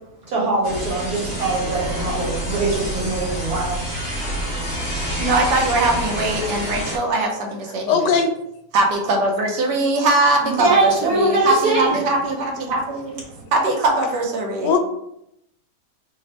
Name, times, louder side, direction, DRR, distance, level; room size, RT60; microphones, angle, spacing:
voice 1, 0.3-3.9 10.4-12.0 13.3-13.4, right 3 dB, 65° right, -4 dB, 1.7 m, -22 dB
sound 1, 0.6-7.0, equal, 40° left, 0.8 m, -27 dB
voice 2, 5.2-8.1 8.7-13.2 13.5-14.7, right 2 dB, 80° right, 2 dB, 1.3 m, -21 dB
voice 3, 7.9-8.3 14.6-14.8, left 5 dB, 85° left, 5 dB, 1.2 m, -18 dB
3.4 x 2.0 x 3.9 m, 0.78 s
omnidirectional pair, 1.8 m